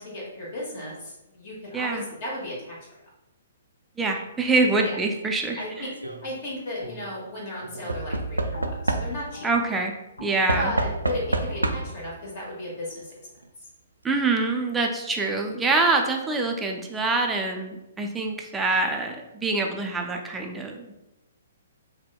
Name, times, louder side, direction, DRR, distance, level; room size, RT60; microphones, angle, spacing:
voice 1, 0.0-2.7 4.7-4.9 5.6-5.9 6.2-9.5 10.5-13.1, left 1 dB, 40° left, -4 dB, 1.2 m, -35 dB
voice 2, 1.7-2.1 4.0-5.8 9.4-9.9 10.2-10.7 14.0-20.9, right 3 dB, 10° right, 2 dB, 0.4 m, -25 dB
Knock / Wood, 5.7-6.2 7.9-9.4 10.5-12.1 13.1-13.2 13.4-13.5, right 2 dB, 85° right, 0.3 m, -28 dB
sound 1, 6.0-6.5 6.8-7.3 7.6-13.4, left 1 dB, 70° left, 0.7 m, -45 dB
5.0 x 2.1 x 2.2 m, 0.96 s
figure-of-eight pair, 120°, 0 cm